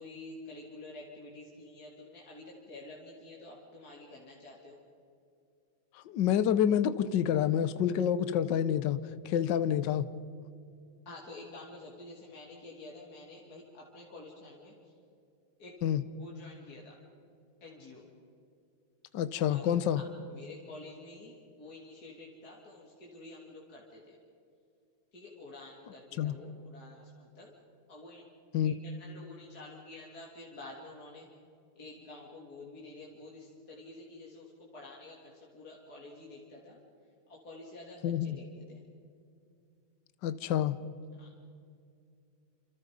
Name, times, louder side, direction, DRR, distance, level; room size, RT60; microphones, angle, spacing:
voice 1, 0.0-4.8 11.1-14.7 15.6-15.8 16.1-17.0 17.6-18.0 19.4-24.2 25.1-27.5 27.9-28.2 28.6-31.3 31.8-36.8 37.3-38.8 41.2-41.3, left 2 dB, 45° left, -4 dB, 3.7 m, -49 dB
voice 2, 6.1-9.0 9.2-10.0 15.8-16.0 19.1-20.0 26.2-26.3 28.5-28.7 38.0-38.4 40.2-40.8, left 9 dB, 65° left, 13 dB, 1.5 m, -28 dB
28.0 x 28.0 x 5.3 m, 2.4 s
omnidirectional pair, 2.3 m